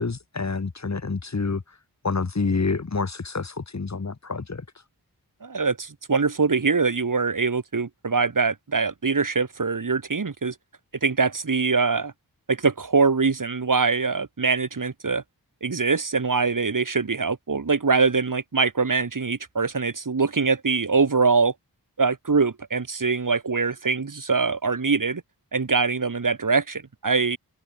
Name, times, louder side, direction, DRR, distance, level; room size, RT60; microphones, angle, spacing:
voice 1, 0.0-1.6 2.0-4.6, left 4 dB, 45° left, 2.4 m, -27 dB
voice 2, 5.4-10.5 11.0-12.1 12.5-15.2 15.6-21.5 22.0-25.2 25.5-27.4, right 4 dB, 55° right, 3.1 m, -23 dB
wide cardioid pair, 70°, 39 cm